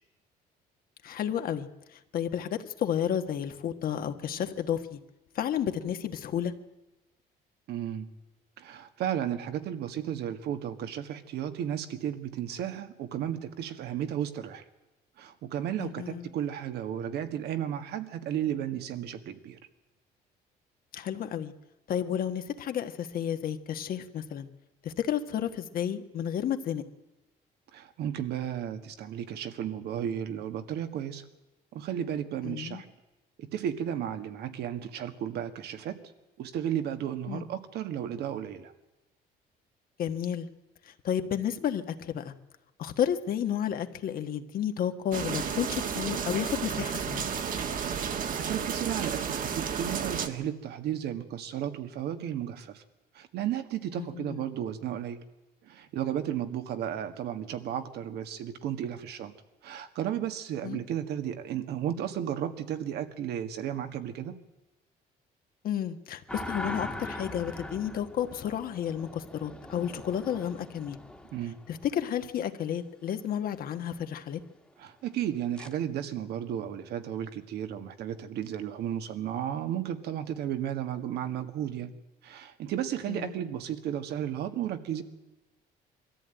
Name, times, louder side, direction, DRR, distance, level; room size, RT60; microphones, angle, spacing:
voice 1, 1.0-5.0 5.3-6.6 15.8-16.3 20.9-21.5 21.9-24.5 24.8-26.8 32.4-32.8 37.3-37.4 40.0-40.5 40.8-42.3 42.8-47.3 54.1-54.4 60.6-60.8 65.6-71.0 71.7-74.4 83.1-83.4, left 9 dB, 60° left, 7 dB, 1.5 m, -32 dB
voice 2, 7.7-8.1 8.6-14.6 15.2-19.6 27.7-31.2 31.7-32.9 33.4-36.0 36.4-38.7 48.4-52.8 53.1-55.2 55.6-59.3 59.6-64.4 71.3-71.6 74.8-81.9 82.2-85.0, right 10 dB, 75° right, 8 dB, 1.8 m, -34 dB
sound 1, 45.1-50.3, right 7 dB, 55° right, 1.9 m, -32 dB
sound 2, 66.3-72.1 75.6-75.7, left 1 dB, 5° left, 1.6 m, -41 dB
22.0 x 14.0 x 9.1 m, 1.0 s
cardioid pair, 110°, 17 cm